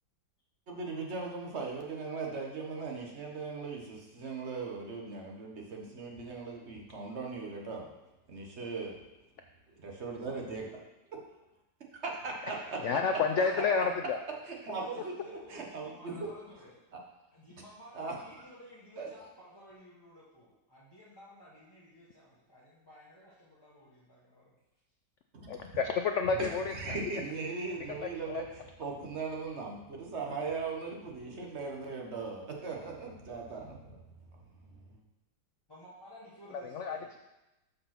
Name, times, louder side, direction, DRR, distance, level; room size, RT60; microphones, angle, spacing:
voice 1, 0.7-7.9 8.3-8.9 9.7-10.7 11.9-13.2 14.4-16.3 17.9-18.1 19.0-19.1 25.3-25.7 26.4-34.0 34.7-34.8, right 4 dB, 45° right, 0 dB, 1.4 m, -39 dB
voice 2, 12.8-14.2 25.5-27.0 27.9-28.0 28.3-28.4 36.5-37.2, left 5 dB, 85° left, 5 dB, 0.6 m, -30 dB
voice 3, 13.4-14.0 14.6-16.8 17.3-24.5 35.7-37.1, left 1 dB, 15° left, -8 dB, 1.1 m, -53 dB
6.7 x 5.3 x 5.9 m, 0.98 s
omnidirectional pair, 1.8 m